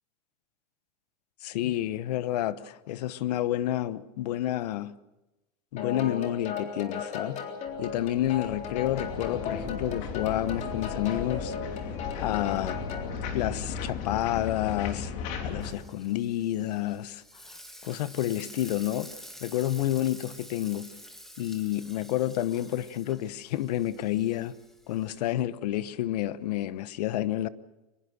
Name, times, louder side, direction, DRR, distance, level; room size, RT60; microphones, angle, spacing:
voice 1, 1.4-4.9 5.7-7.4 7.8-12.8 13.3-15.1 15.4-17.2 17.8-19.1 19.4-20.9 21.4-24.6 24.9-27.5, left 13 dB, 85° left, 1.1 m, -29 dB
sound 1, 5.8-13.1, left 6 dB, 35° left, 3.7 m, -37 dB
sound 2, 7.7-15.7, left 5 dB, 55° left, 3.7 m, -36 dB
Frying (food), 15.6-25.3, equal, ahead, 1.7 m, -49 dB
23.5 x 21.5 x 6.5 m
supercardioid pair, 150°, 20 cm